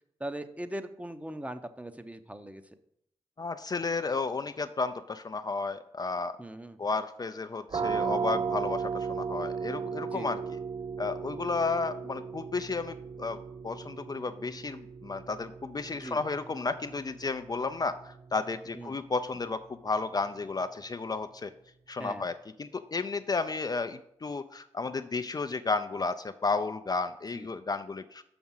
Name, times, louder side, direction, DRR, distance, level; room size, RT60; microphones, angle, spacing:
voice 1, 0.2-2.6 6.4-6.8 10.1-10.4 16.0-16.2 18.7-18.9 22.0-22.2 27.3-27.5, right 1 dB, 10° right, 10 dB, 0.8 m, -40 dB
voice 2, 3.4-6.4 6.8-10.4 11.0-21.5 21.9-22.3 22.6-28.2, left 4 dB, 35° left, 9 dB, 0.5 m, -33 dB
sound 1, 7.7-19.2, right 6 dB, 40° right, 0.4 m, -36 dB
6.2 x 6.0 x 5.6 m, 0.73 s
supercardioid pair, 50°, 12 cm